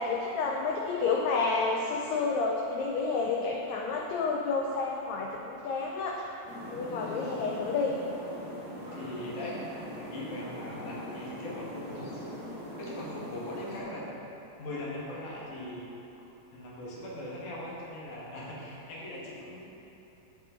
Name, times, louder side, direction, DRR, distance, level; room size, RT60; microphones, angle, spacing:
voice 1, 0.0-6.2 6.7-8.0, left 4 dB, 85° left, -1 dB, 1.5 m, -30 dB
sound 1, 6.5-13.8, equal, 40° left, 1.4 m, -41 dB
voice 2, 6.9-7.3 8.9-9.7 10.0-12.1 12.8-14.1 14.6-15.8 16.5-19.7, left 1 dB, 70° left, -5 dB, 2.8 m, -40 dB
8.3 x 7.9 x 3.7 m, 3.0 s
omnidirectional pair, 3.8 m